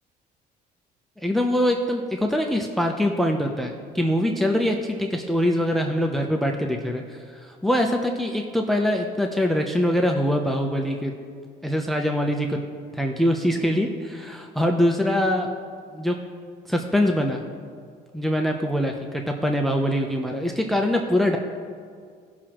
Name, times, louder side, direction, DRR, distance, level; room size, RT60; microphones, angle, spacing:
voice 1, 1.2-11.1 11.6-12.6 12.9-15.5 15.9-16.2 16.7-17.4 18.1-21.4, equal, ahead, 3 dB, 0.7 m, -23 dB
16.5 x 6.1 x 3.0 m, 2.1 s
cardioid pair, 110°, 17 cm